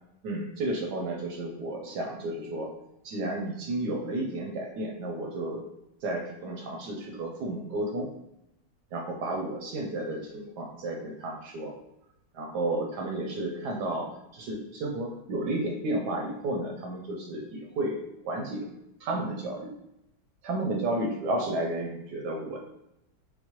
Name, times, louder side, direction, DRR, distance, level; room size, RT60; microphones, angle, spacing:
voice 1, 0.2-2.7 3.0-5.7 6.0-8.1 8.9-11.7 12.3-18.7 19.0-19.7 20.4-22.6, right 1 dB, 75° right, 0 dB, 0.9 m, -32 dB
4.4 x 2.0 x 2.9 m, 0.83 s
omnidirectional pair, 2.3 m